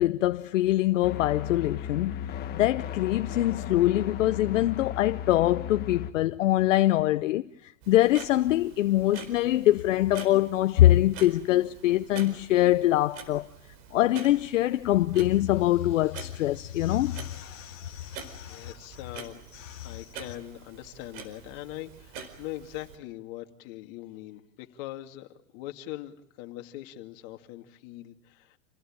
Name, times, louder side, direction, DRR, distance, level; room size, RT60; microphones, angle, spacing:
voice 1, 0.0-13.5 13.9-18.7 19.5-20.0, left 14 dB, 65° left, 0.9 m, -24 dB
sound 1, 1.0-6.1, left 9 dB, 25° left, 1.4 m, -36 dB
Clock, 7.8-23.0, right 6 dB, 45° right, 4.6 m, -46 dB
voice 2, 18.5-19.4 19.8-28.6, left 15 dB, 45° left, 2.5 m, -42 dB
28.5 x 17.5 x 8.9 m
hypercardioid pair, 140°, 40 cm